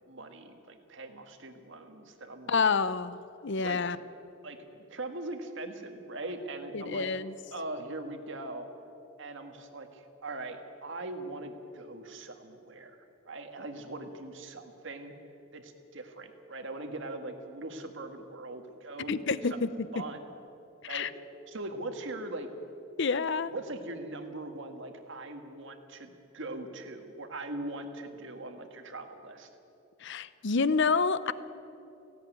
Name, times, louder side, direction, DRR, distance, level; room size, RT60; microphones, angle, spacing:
voice 1, 0.1-2.6 3.6-3.9 4.4-7.1 7.5-8.7 9.2-13.0 13.3-15.1 15.5-19.6 19.9-20.4 20.9-21.1 21.5-22.5 23.5-29.5, right 2 dB, 60° right, 6 dB, 1.8 m, -41 dB
voice 2, 2.5-4.0 6.7-7.3 19.1-19.7 19.9-20.0 20.8-21.1 23.0-23.5 30.0-31.3, left 4 dB, 60° left, 15 dB, 0.7 m, -28 dB
17.5 x 16.5 x 9.3 m, 2.9 s
head